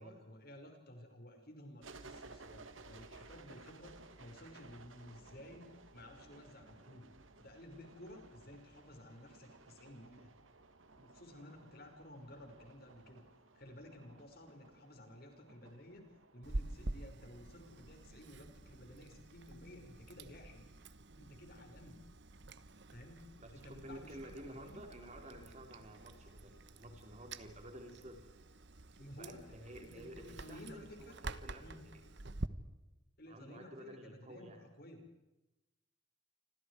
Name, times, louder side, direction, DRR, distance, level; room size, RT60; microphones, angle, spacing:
voice 1, 0.0-5.7 5.9-7.1 7.4-10.3 11.0-13.2 13.5-16.1 16.3-20.6 21.2-22.0 22.9-23.2 23.5-24.8 29.0-31.2 31.6-31.8 33.2-35.0, left 1 dB, 50° left, 5 dB, 5.6 m, -54 dB
sound 1, 1.8-18.3, right 3 dB, 85° right, 2.3 m, -58 dB
Chewing mastication, 16.4-32.5, right 2 dB, 60° right, 1.2 m, -48 dB
voice 2, 23.4-28.3 29.2-32.0 33.3-34.6, right 1 dB, 35° right, 3 dB, 4.6 m, -52 dB
29.0 x 26.0 x 4.9 m, 1.0 s
head